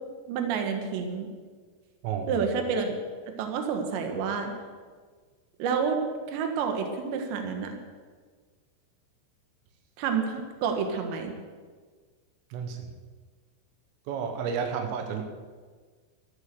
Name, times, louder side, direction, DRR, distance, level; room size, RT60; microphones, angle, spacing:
voice 1, 0.3-1.3 2.3-2.9 3.3-4.5 5.6-6.0 6.3-7.8 10.0-11.4, right 6 dB, 70° right, 4 dB, 3.7 m, -29 dB
voice 2, 2.0-2.4 12.5-12.9 14.1-15.2, right 6 dB, 85° right, 4 dB, 3.9 m, -31 dB
13.5 x 13.5 x 7.0 m, 1.5 s
omnidirectional pair, 5.7 m